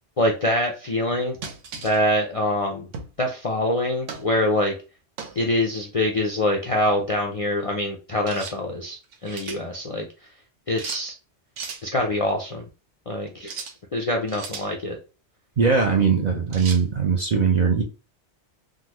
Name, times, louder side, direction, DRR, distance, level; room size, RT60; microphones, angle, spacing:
voice 1, 0.2-1.4 1.8-2.9 3.2-4.7 5.4-10.1 10.7-11.1 11.8-12.6 13.1-13.5 13.9-15.0, left 1 dB, 50° left, 0 dB, 0.4 m, -24 dB
sound 1, 1.4-2.0 2.9-3.2 4.1-4.3 5.2-5.4 8.3-8.6 9.0-9.6 10.8-11.0 11.6-11.8 13.4-13.8 14.3-14.7 16.5-16.8, right 5 dB, 90° right, 1.0 m, -36 dB
voice 2, 15.6-17.8, right 5 dB, 50° right, 1 dB, 0.5 m, -20 dB
3.7 x 2.1 x 2.9 m, 0.33 s
omnidirectional pair, 1.2 m